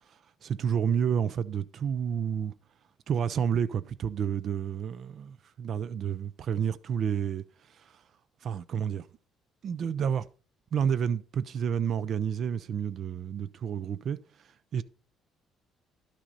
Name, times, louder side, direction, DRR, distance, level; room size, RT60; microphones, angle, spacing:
voice 1, 0.4-2.5 3.1-7.4 7.8-7.9 8.4-9.0 9.6-10.3 10.7-14.2 14.7-14.8, right 7 dB, 45° right, 0.4 m, -30 dB
11.5 x 6.1 x 4.0 m
cardioid pair, 150°, 0 cm